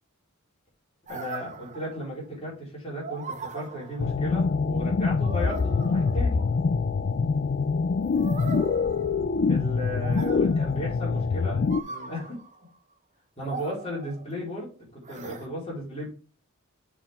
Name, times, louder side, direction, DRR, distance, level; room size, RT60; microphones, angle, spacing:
voice 1, 1.1-6.4 9.5-12.4 13.4-16.1, equal, 30° left, -4 dB, 4.0 m, -35 dB
sound 1, 1.1-2.3 3.0-4.4 5.2-6.7 8.0-9.6 10.0-11.0 11.7-12.6 13.4-14.5 15.0-15.5, right 3 dB, 35° right, 0.8 m, -40 dB
sound 2, 4.0-11.8, left 4 dB, 45° left, 0.4 m, -25 dB
7.3 x 4.5 x 3.6 m, 0.36 s
head